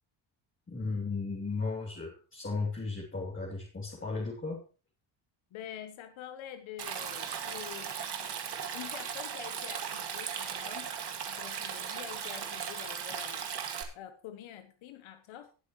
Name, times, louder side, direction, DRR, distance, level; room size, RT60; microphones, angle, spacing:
voice 1, 0.7-4.6, left 3 dB, 25° left, -4 dB, 3.0 m, -35 dB
voice 2, 5.5-7.9 8.7-10.9 11.3-13.4 13.9-15.5, left 11 dB, 80° left, 9 dB, 1.2 m, -46 dB
Stream, 6.8-13.8, right 7 dB, 55° right, 2.2 m, -37 dB
18.5 x 8.1 x 3.1 m, 0.34 s
cardioid pair, 95°, 47 cm